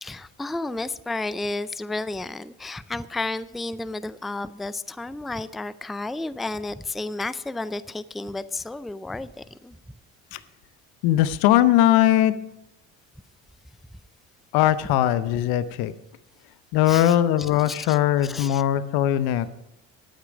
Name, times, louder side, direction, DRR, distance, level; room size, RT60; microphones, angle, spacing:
voice 1, 0.0-9.8 16.9-18.0 18.2-18.6, left 2 dB, ahead, 16 dB, 0.3 m, -32 dB
voice 2, 11.0-12.3 14.5-15.9 16.7-19.5, left 12 dB, 75° left, 14 dB, 0.8 m, -20 dB
13.0 x 8.9 x 5.1 m, 0.89 s
supercardioid pair, 75°, 37 cm